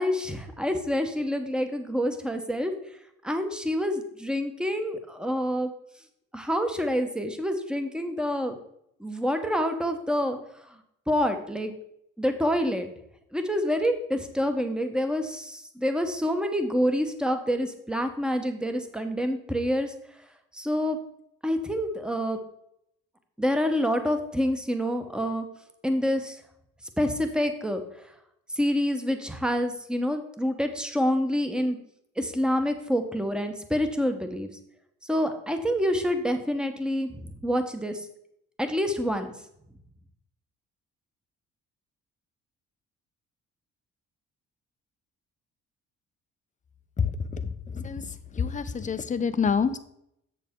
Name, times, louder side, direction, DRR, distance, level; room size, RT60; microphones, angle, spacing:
voice 1, 0.0-2.7 3.2-5.7 6.3-8.5 9.0-10.4 11.1-11.7 12.2-12.9 13.3-19.9 20.5-21.0 21.4-22.4 23.4-25.5 25.8-26.4 27.0-27.8 28.5-31.8 32.2-34.5 35.0-38.1 38.6-39.3, equal, 5° right, 7 dB, 1.0 m, -27 dB
voice 2, 47.0-47.4 47.7-48.1 48.3-49.8, left 6 dB, 25° left, 10 dB, 0.6 m, -27 dB
7.3 x 6.8 x 3.7 m, 0.76 s
cardioid pair, 90°, 30 cm